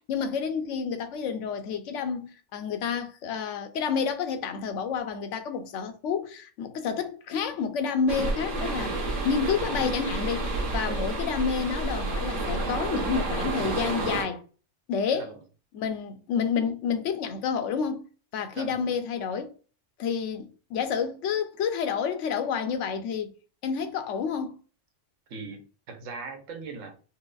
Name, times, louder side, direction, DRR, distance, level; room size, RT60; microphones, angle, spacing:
voice 1, 0.0-14.4 14.9-15.3 15.7-18.1 18.3-19.5 20.0-23.3 23.6-24.6, left 6 dB, 75° left, 0.9 m, -29 dB
sound 1, 8.1-14.2, right 2 dB, 50° right, 1.0 m, -30 dB
voice 2, 10.9-11.2 15.2-15.4 18.5-18.9 25.3-26.9, right 4 dB, 85° right, 1.2 m, -39 dB
4.6 x 2.0 x 2.3 m
omnidirectional pair, 1.3 m